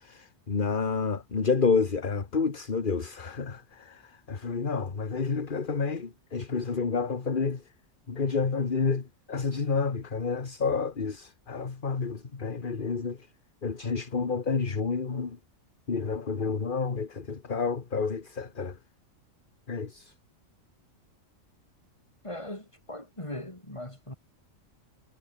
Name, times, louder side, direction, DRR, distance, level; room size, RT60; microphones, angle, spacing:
voice 1, 0.0-7.7 8.1-13.3 13.6-15.4 15.9-18.8 19.7-20.1, left 5 dB, 40° left, 1.6 m, -29 dB
voice 2, 22.2-24.1, left 1 dB, 20° left, 4.8 m, -39 dB
omnidirectional pair, 1.4 m